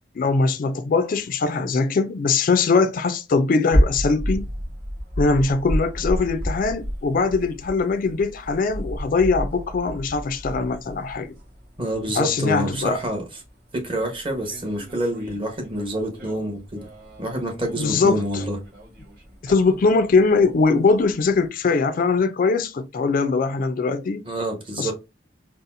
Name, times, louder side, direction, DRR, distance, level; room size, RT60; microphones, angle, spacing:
voice 1, 0.2-4.5 5.2-11.3 12.1-13.0 17.8-18.4 19.4-24.3 24.8-24.9, left 4 dB, 50° left, 0.4 m, -21 dB
sound 1, 3.7-21.5, equal, 55° right, 1.7 m, -31 dB
voice 2, 11.8-13.4 13.7-16.9 17.2-18.6 24.2-24.9, right 1 dB, 30° right, 1.0 m, -27 dB
4.0 x 2.0 x 2.5 m
head